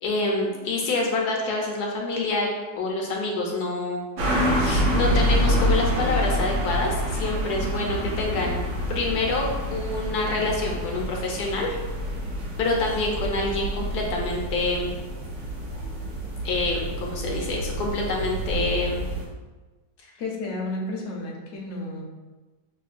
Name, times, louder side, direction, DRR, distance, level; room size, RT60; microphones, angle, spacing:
voice 1, 0.0-2.5 2.8-4.0 4.5-8.6 8.9-11.7 12.6-14.9 16.4-19.0, left 2 dB, 70° left, -1 dB, 1.1 m, -27 dB
sound 1, 4.2-19.3, equal, 90° right, 1.5 m, -27 dB
voice 2, 20.2-22.0, left 2 dB, 55° left, -2 dB, 0.8 m, -32 dB
6.1 x 2.1 x 2.4 m, 1.2 s
omnidirectional pair, 1.8 m